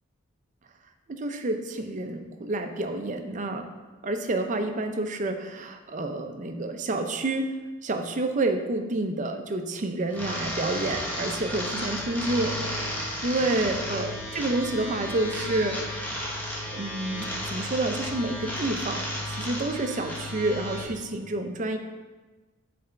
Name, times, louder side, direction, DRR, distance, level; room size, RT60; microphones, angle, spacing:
voice 1, 1.1-3.7 4.0-7.5 7.8-16.1 16.7-21.8, right 2 dB, 35° right, 6 dB, 0.5 m, -29 dB
sound 1, 10.1-20.8, left 1 dB, 10° left, 0.9 m, -33 dB
7.6 x 3.4 x 4.4 m, 1.3 s
head